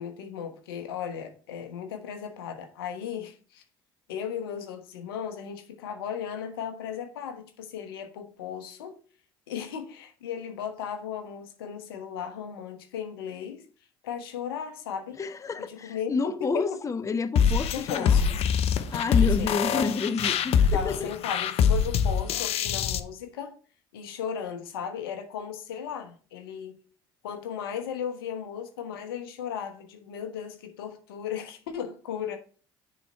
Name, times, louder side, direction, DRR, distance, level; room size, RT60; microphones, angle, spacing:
voice 1, 0.0-3.6 4.1-9.0 9.5-13.6 14.0-15.2 15.7-16.1 16.4-16.8 17.7-18.2 19.1-19.9 20.7-23.6 23.9-26.8 27.2-32.4, left 8 dB, 80° left, 1.2 m, -36 dB
voice 2, 15.2-18.2 18.9-21.1, left 4 dB, 25° left, 0.6 m, -29 dB
sound 1, 17.4-23.0, left 7 dB, 55° left, 0.8 m, -24 dB
9.7 x 4.3 x 4.3 m
hypercardioid pair, 65°, 12 cm